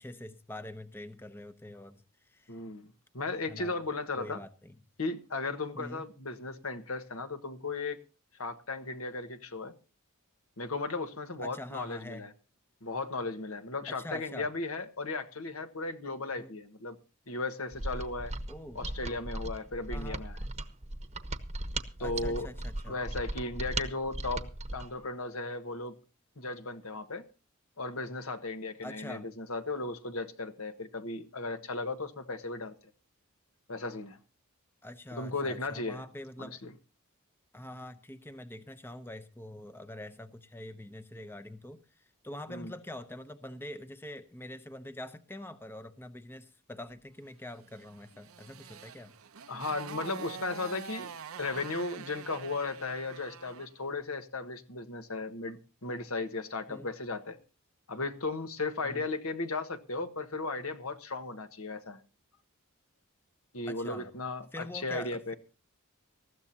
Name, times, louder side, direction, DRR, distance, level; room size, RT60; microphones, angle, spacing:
voice 1, 0.0-2.6 3.5-3.8 4.2-4.8 5.7-6.1 11.4-12.3 13.9-14.5 16.4-16.5 18.5-18.8 19.9-20.2 22.0-23.0 28.8-29.3 34.8-36.6 37.5-49.2 56.7-56.9 58.8-59.1 63.7-64.1 64.5-65.3, left 1 dB, 10° left, 10 dB, 0.7 m, -45 dB
voice 2, 2.5-2.9 3.1-4.4 5.0-8.0 8.4-9.7 10.6-12.3 12.8-17.0 17.3-18.3 18.7-20.4 22.0-22.5 22.9-25.9 26.4-27.2 27.8-32.7 33.7-34.2 35.1-36.0 36.4-36.7 42.5-42.7 49.5-51.1 51.4-57.4 57.9-62.0 63.5-65.3, left 3 dB, 75° left, 8 dB, 1.5 m, -36 dB
Mechanisms, 17.7-24.9, right 2 dB, 30° right, 1.0 m, -37 dB
Motorcycle, 47.7-53.8, right 7 dB, 75° right, 0.8 m, -46 dB
19.5 x 14.5 x 2.8 m, 0.33 s
head